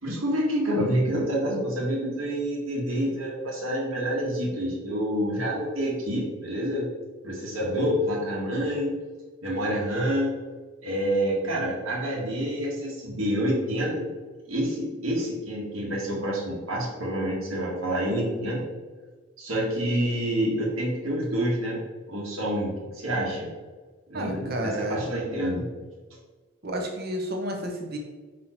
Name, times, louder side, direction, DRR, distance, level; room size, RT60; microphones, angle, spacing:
voice 1, 0.0-6.9 7.2-8.9 9.4-10.3 10.8-14.1 14.5-18.6 19.4-21.8 22.1-23.5 24.1-25.7, equal, 70° right, -4 dB, 1.9 m, -27 dB
voice 2, 24.1-25.0 26.6-28.0, right 1 dB, 45° right, 1 dB, 1.2 m, -31 dB
5.9 x 4.4 x 4.5 m, 1.4 s
head